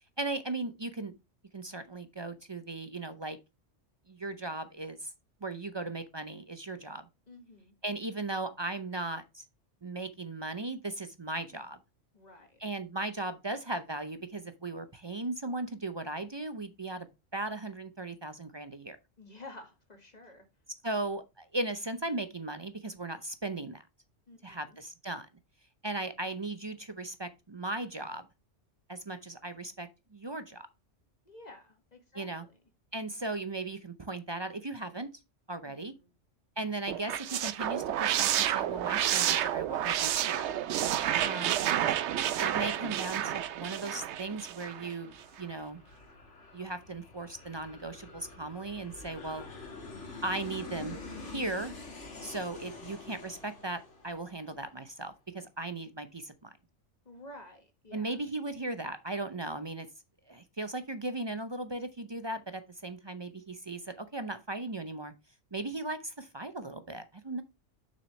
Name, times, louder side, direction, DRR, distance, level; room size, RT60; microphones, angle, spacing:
voice 1, 0.2-1.1 1.5-3.4 4.1-5.1 5.4-7.0 7.8-9.4 9.8-11.8 12.6-19.0 20.8-23.8 24.4-25.3 25.8-28.2 28.9-30.7 32.1-32.4 32.9-35.1 35.5-35.9 36.6-40.5 41.2-41.5 42.2-45.8 46.5-49.4 50.2-51.0 51.3-51.7 52.2-56.5 57.9-59.9 60.3-65.1 65.5-67.4, right 2 dB, 35° right, 0.4 m, -37 dB
voice 2, 7.3-7.7 12.1-12.6 19.2-20.5 24.3-24.8 31.3-32.6 35.6-36.1 36.6-36.7 57.1-58.2, left 1 dB, 35° left, 1.7 m, -52 dB
sound 1, 36.9-44.9, right 11 dB, 70° right, 0.8 m, -30 dB
Aircraft, 42.0-55.0, left 3 dB, 65° left, 2.1 m, -48 dB
7.1 x 6.0 x 3.1 m
omnidirectional pair, 1.3 m